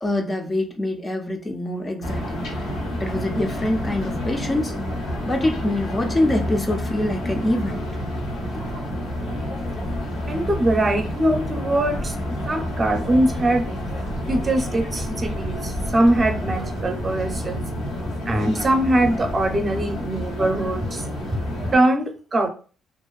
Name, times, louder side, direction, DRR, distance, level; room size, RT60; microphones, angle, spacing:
voice 1, 0.0-2.5 3.0-4.8 5.3-7.8 8.5-8.6, left 1 dB, 25° left, 0.5 m, -25 dB
sound 1, 2.0-21.8, left 1 dB, 85° left, 0.8 m, -29 dB
voice 2, 10.3-13.7 14.0-17.7 18.3-21.0 21.7-22.5, right 1 dB, 30° right, 0.6 m, -22 dB
2.5 x 2.2 x 2.3 m
cardioid pair, 90°, 0 cm